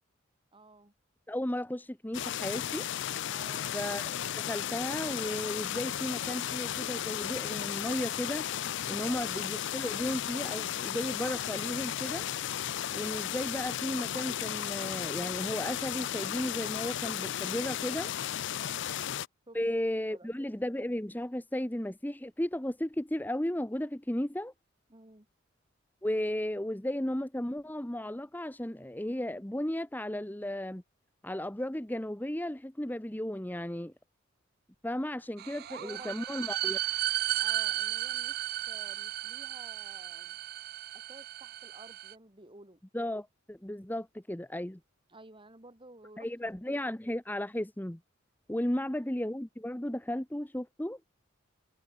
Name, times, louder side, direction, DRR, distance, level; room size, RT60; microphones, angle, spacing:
voice 1, 0.5-0.9 3.3-3.8 8.9-9.3 18.6-19.0 19.5-19.6 20.1-20.3 24.9-25.3 35.7-36.3 37.4-40.4 40.9-42.8 45.1-46.3 48.6-48.7, right 2 dB, 25° right, 3.2 m, -52 dB
voice 2, 1.3-2.9 3.7-8.5 8.9-12.3 12.9-18.1 19.5-24.5 26.0-30.8 31.2-33.9 34.8-36.8 42.9-44.8 46.2-48.0 48.5-51.0, left 1 dB, 10° left, 0.9 m, -34 dB
sound 1, 2.1-19.3, left 10 dB, 60° left, 0.5 m, -35 dB
sound 2, 35.4-42.1, right 14 dB, 50° right, 0.3 m, -34 dB
head